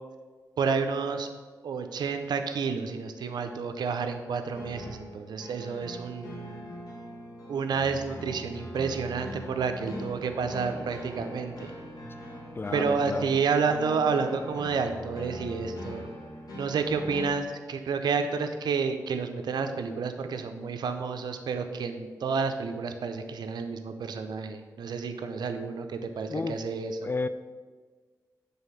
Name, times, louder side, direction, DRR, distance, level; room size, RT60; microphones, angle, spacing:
voice 1, 0.6-1.3 1.6-6.6 7.5-11.7 12.7-16.1 16.5-27.1, right 5 dB, 75° right, 7 dB, 0.6 m, -30 dB
sound 1, 4.5-17.3, equal, 65° left, 2.0 m, -42 dB
voice 2, 12.6-13.3 26.3-26.6 27.0-27.3, left 3 dB, 30° left, 12 dB, 0.4 m, -31 dB
7.1 x 3.5 x 5.6 m, 1.4 s
cardioid pair, 55°, 7 cm